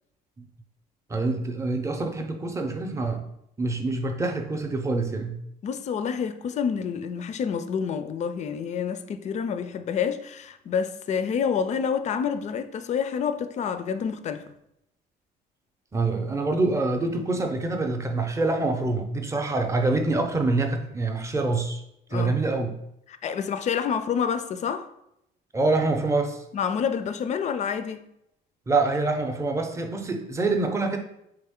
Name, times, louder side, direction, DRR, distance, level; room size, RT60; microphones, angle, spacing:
voice 1, 1.1-3.2 3.6-5.4 15.9-21.8 22.1-22.8 25.5-26.4 28.7-31.0, right 3 dB, 15° right, 0.6 m, -25 dB
voice 2, 5.6-14.4 22.1-22.3 23.1-24.9 26.5-28.1, left 7 dB, 45° left, 0.4 m, -28 dB
3.8 x 3.3 x 3.6 m
cardioid pair, 110°, 17 cm